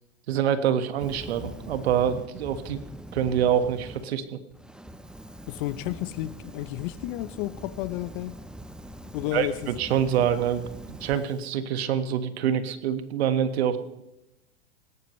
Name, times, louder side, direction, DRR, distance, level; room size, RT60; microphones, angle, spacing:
voice 1, 0.3-2.8 3.1-4.4 9.3-10.6 10.9-13.8, right 9 dB, 70° right, 10 dB, 1.7 m, -25 dB
Fire, 0.9-4.1 4.5-11.5, right 1 dB, ahead, 0.7 m, -43 dB
voice 2, 5.5-8.3 9.1-9.6, left 16 dB, 50° left, 16 dB, 0.9 m, -32 dB
18.0 x 18.0 x 3.2 m, 0.90 s
hypercardioid pair, 110°, 33 cm